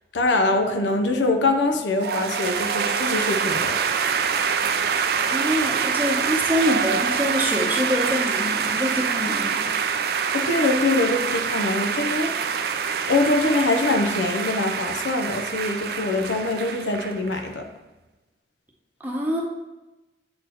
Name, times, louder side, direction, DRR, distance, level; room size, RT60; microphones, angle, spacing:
voice 1, 0.1-3.8 10.3-12.6 13.1-17.7, left 2 dB, 90° left, 5 dB, 0.7 m, -23 dB
sound 1, 2.0-17.5, right 6 dB, 55° right, 0.3 m, -25 dB
voice 2, 5.3-9.6 19.0-19.4, equal, 10° right, -1 dB, 0.8 m, -25 dB
7.6 x 4.2 x 2.9 m, 1.1 s
head